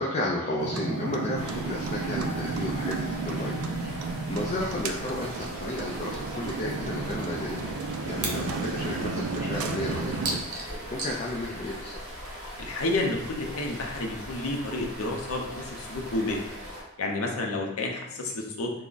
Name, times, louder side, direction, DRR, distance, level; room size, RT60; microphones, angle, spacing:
voice 1, 0.0-3.6 4.3-7.7 8.0-10.4 10.9-11.9, left 1 dB, 30° left, -3 dB, 0.3 m, -32 dB
sound 1, 0.6-10.4, right 4 dB, 70° right, 0.4 m, -33 dB
sound 2, 1.3-16.8, equal, 45° right, 1.4 m, -40 dB
sound 3, 5.8-5.9 6.2-6.3 6.7-6.8 7.0-8.4 8.7-8.8 9.2-11.2, right 3 dB, 85° right, 0.8 m, -35 dB
voice 2, 12.6-16.4 17.0-18.7, left 2 dB, 75° left, 1 dB, 0.6 m, -30 dB
3.4 x 2.1 x 3.8 m, 0.92 s
head